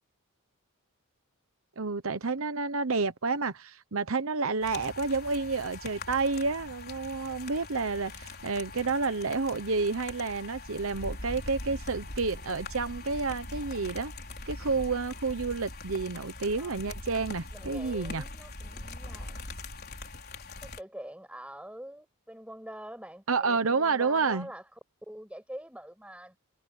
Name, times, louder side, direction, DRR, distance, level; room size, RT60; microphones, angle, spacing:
voice 1, 1.8-14.1 14.5-18.2 23.3-24.5, right 4 dB, 70° right, 1.0 m, -30 dB
sound 1, 4.6-20.8, left 2 dB, 45° left, 4.3 m, -42 dB
voice 2, 16.6-16.9 17.5-19.4 20.6-24.6 25.0-26.4, right 1 dB, 5° right, 7.3 m, -45 dB
head